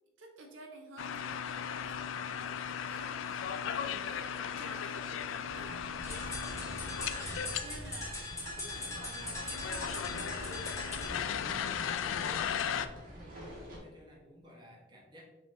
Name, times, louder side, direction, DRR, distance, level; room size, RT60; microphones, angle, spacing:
voice 1, 0.2-11.7, right 2 dB, 80° right, 2 dB, 0.7 m, -52 dB
sound 1, 1.0-7.6 7.9-12.9, left 8 dB, 80° left, 0.3 m, -37 dB
sound 2, 5.4-13.8, equal, 45° right, 1.4 m, -48 dB
sound 3, 6.0-11.1, left 2 dB, 15° left, 1.1 m, -41 dB
voice 2, 12.4-15.2, equal, 25° right, -2 dB, 1.0 m, -56 dB
5.3 x 3.5 x 2.6 m, 1.1 s
head